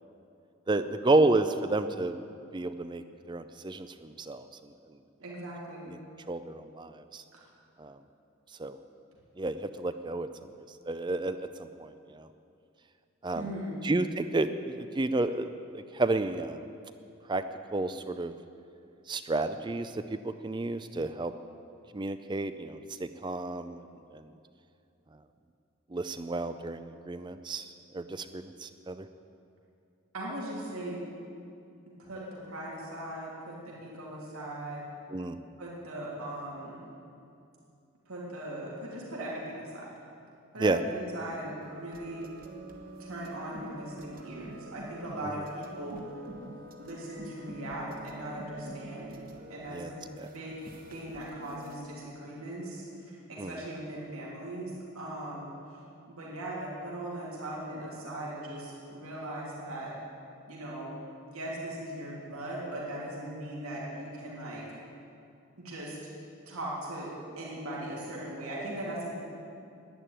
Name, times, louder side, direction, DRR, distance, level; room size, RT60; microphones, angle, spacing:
voice 1, 0.7-2.2 2.5-4.5 5.9-6.0 6.3-7.2 7.8-8.0 8.6-8.8 9.4-12.3 13.2-13.5 13.8-16.6 17.3-17.4 17.7-18.3 19.1-21.3 21.9-23.9 24.1-24.2 25.9-29.1 35.1-35.4 40.6-40.8 45.2-45.4 49.7-49.9 50.2-50.3 53.4-53.5, right 2 dB, 20° right, 10 dB, 0.4 m, -31 dB
voice 2, 5.2-5.9 7.3-7.4 13.3-13.8 30.1-31.0 31.8-34.8 35.6-36.8 38.0-39.9 40.5-42.3 43.0-46.1 46.8-49.1 49.5-50.0 50.3-50.6 50.9-55.5 56.1-59.9 60.5-60.9 61.2-64.8 65.6-66.0 66.5-69.1, right 1 dB, 80° right, -5 dB, 3.0 m, -39 dB
sound 1, 41.6-51.8, right 1 dB, 40° right, 1.3 m, -46 dB
11.0 x 10.5 x 9.1 m, 2.5 s
head